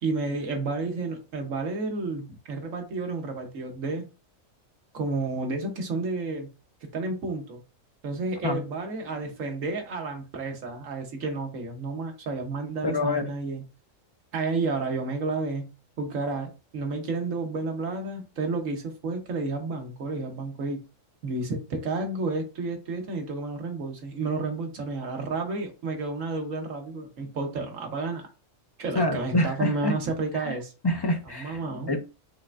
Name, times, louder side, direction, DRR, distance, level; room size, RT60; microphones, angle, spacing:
voice 1, 0.0-4.1 4.9-6.5 6.9-7.6 8.0-13.6 14.3-15.7 16.0-20.8 21.2-28.2 28.8-30.7 31.4-31.9, right 3 dB, 75° right, 1.5 m, -31 dB
voice 2, 12.8-13.3 28.9-29.9 30.4-30.6 30.8-31.6 31.9-32.0, left 1 dB, 40° left, 0.3 m, -26 dB
5.8 x 3.2 x 2.5 m
omnidirectional pair, 1.4 m